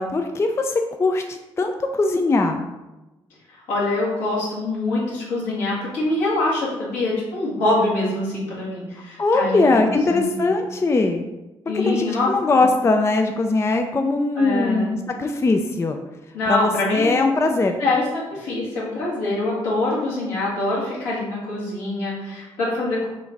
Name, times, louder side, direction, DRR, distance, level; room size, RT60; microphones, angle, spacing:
voice 1, 0.0-2.7 9.2-11.2 11.8-16.0 16.5-17.8, left 3 dB, 20° left, 5 dB, 0.3 m, -21 dB
voice 2, 3.7-10.5 11.7-12.7 14.4-14.9 16.3-17.2 17.8-23.1, left 2 dB, 75° left, -7 dB, 1.5 m, -24 dB
3.8 x 2.5 x 3.4 m, 1.0 s
hypercardioid pair, 40°, 13 cm